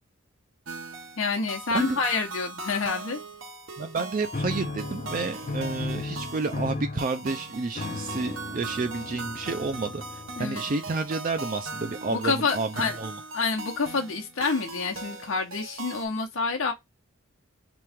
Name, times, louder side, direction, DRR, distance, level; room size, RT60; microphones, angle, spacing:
sound 1, 0.7-16.1, right 3 dB, 70° right, 0.9 m, -39 dB
voice 1, 1.2-3.2 10.4-10.6 12.1-13.0 13.3-16.7, left 4 dB, 75° left, 0.8 m, -28 dB
voice 2, 3.8-13.2, right 3 dB, 40° right, 0.4 m, -30 dB
sound 2, 4.3-10.8, left 3 dB, 35° left, 0.4 m, -36 dB
3.6 x 3.0 x 3.4 m
head